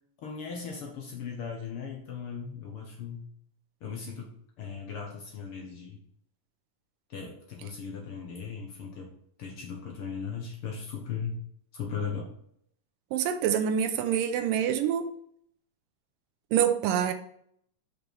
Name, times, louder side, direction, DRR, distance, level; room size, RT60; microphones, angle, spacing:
voice 1, 0.2-3.3 3.8-4.3 4.6-6.0 7.1-9.1 9.4-11.4 11.7-12.3, left 6 dB, 65° left, 0 dB, 1.4 m, -37 dB
voice 2, 13.1-15.1 16.5-17.1, right 9 dB, 85° right, 9 dB, 2.4 m, -26 dB
6.6 x 5.4 x 4.5 m, 0.68 s
omnidirectional pair, 3.9 m